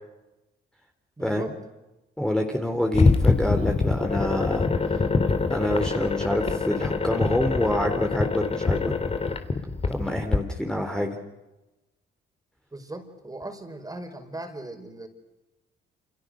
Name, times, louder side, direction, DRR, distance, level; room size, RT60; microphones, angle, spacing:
voice 1, 1.2-1.6 12.7-15.1, right 2 dB, 20° right, 7 dB, 5.3 m, -38 dB
voice 2, 2.2-4.7 5.5-9.1 9.9-11.1, left 1 dB, 5° left, 3 dB, 4.0 m, -27 dB
sound 1, 2.9-10.4, left 4 dB, 30° left, 3.4 m, -24 dB
29.5 x 28.0 x 6.6 m, 1.0 s
cardioid pair, 90°, 20 cm